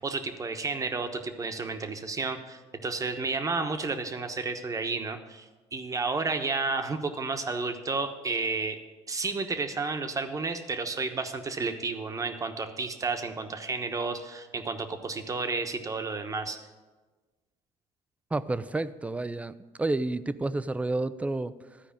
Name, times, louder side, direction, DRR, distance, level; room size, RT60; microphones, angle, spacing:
voice 1, 0.0-8.8 9.1-16.6, right 4 dB, 25° right, 7 dB, 1.1 m, -31 dB
voice 2, 18.3-21.8, right 2 dB, 10° right, 15 dB, 0.4 m, -30 dB
13.0 x 4.8 x 8.6 m, 1.3 s
supercardioid pair, 100°, 13 cm